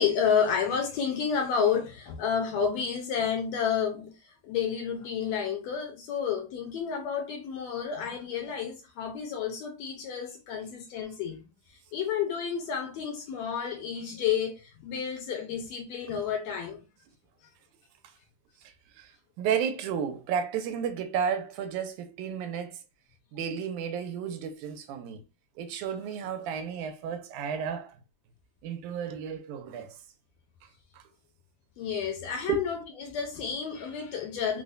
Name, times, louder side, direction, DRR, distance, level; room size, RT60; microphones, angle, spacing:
voice 1, 0.0-11.4 11.7-16.8 31.8-34.6, left 7 dB, 75° left, 1.7 m, -30 dB
voice 2, 19.4-22.8 23.3-25.2 25.6-28.0 28.6-30.0 30.9-31.0 32.5-32.6, right 7 dB, 85° right, 2.0 m, -32 dB
4.9 x 2.1 x 2.5 m
omnidirectional pair, 3.5 m